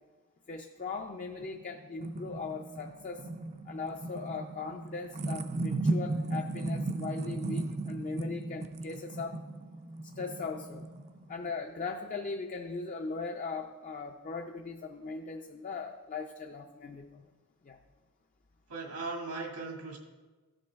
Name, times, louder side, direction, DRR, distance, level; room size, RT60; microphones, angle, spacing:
voice 1, 0.5-3.3 3.6-9.4 10.1-10.9 11.3-17.3 17.6-17.8, left 4 dB, 35° left, 3 dB, 0.4 m, -39 dB
sound 1, 1.4-11.5, right 2 dB, 30° right, 0.4 m, -36 dB
voice 2, 18.7-20.0, right 3 dB, 85° right, 0 dB, 1.9 m, -38 dB
14.0 x 5.3 x 3.5 m, 1.3 s
head